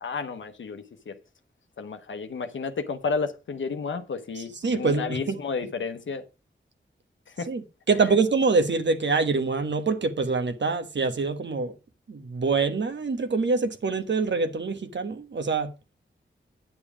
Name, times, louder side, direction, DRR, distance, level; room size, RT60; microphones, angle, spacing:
voice 1, 0.0-1.2 1.8-6.2 7.4-7.5, left 5 dB, 80° left, 0.9 m, -32 dB
voice 2, 4.4-5.4 7.5-11.7 12.1-15.7, right 4 dB, 70° right, 1.3 m, -25 dB
9.6 x 7.2 x 4.8 m
cardioid pair, 60°, 20 cm